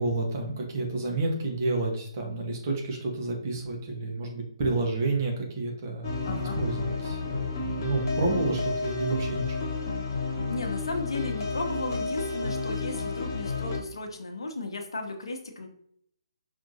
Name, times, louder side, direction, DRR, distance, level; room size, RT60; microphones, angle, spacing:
voice 1, 0.0-9.7, right 2 dB, 35° right, 0 dB, 1.3 m, -30 dB
sound 1, 6.0-13.8, left 3 dB, 35° left, 1.1 m, -31 dB
voice 2, 6.2-6.6 10.5-15.7, left 2 dB, 65° left, 4 dB, 0.9 m, -35 dB
5.6 x 3.5 x 2.7 m, 0.66 s
figure-of-eight pair, 140°, 3 cm